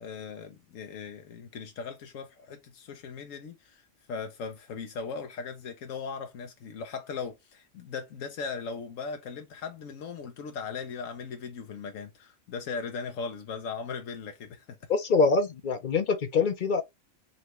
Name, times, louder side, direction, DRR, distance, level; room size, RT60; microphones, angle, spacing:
voice 1, 0.0-3.8 4.1-14.9, left 5 dB, 85° left, 1.2 m, -38 dB
voice 2, 14.9-16.8, left 4 dB, 50° left, 0.6 m, -24 dB
4.1 x 3.3 x 3.0 m
omnidirectional pair, 1.3 m